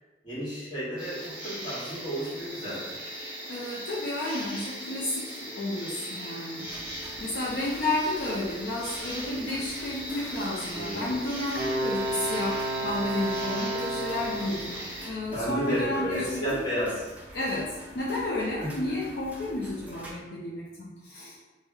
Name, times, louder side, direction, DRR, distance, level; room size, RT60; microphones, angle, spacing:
voice 1, 0.2-2.9 10.7-11.1 15.3-17.1 18.6-18.7, equal, 25° left, -9 dB, 1.3 m, -32 dB
sound 1, 1.0-15.1, right 1 dB, 30° right, 1.2 m, -39 dB
voice 2, 3.5-6.7 7.2-14.8 15.0-16.6 17.3-21.4, left 2 dB, 65° left, -6 dB, 0.5 m, -32 dB
sound 2, 6.7-20.1, equal, 10° right, 0.5 m, -46 dB
Wind instrument woodwind instrument, 11.6-14.7, right 1 dB, 70° right, 0.4 m, -31 dB
3.4 x 2.1 x 3.3 m, 1.2 s
head